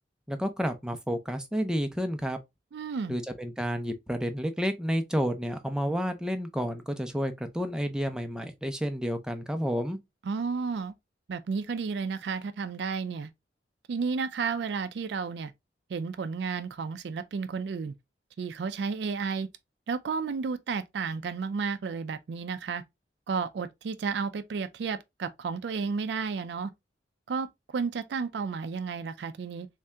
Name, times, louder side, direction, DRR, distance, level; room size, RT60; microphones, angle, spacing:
voice 1, 0.3-2.4 3.1-10.0, equal, 5° right, 0.5 m, -30 dB
voice 2, 2.7-3.2 10.2-10.9 11.3-13.3 13.9-15.5 15.9-17.9 18.4-19.5 19.9-22.8 23.3-26.7 27.3-27.5 27.7-29.7, right 5 dB, 65° right, 0.3 m, -32 dB
3.2 x 2.7 x 3.3 m
head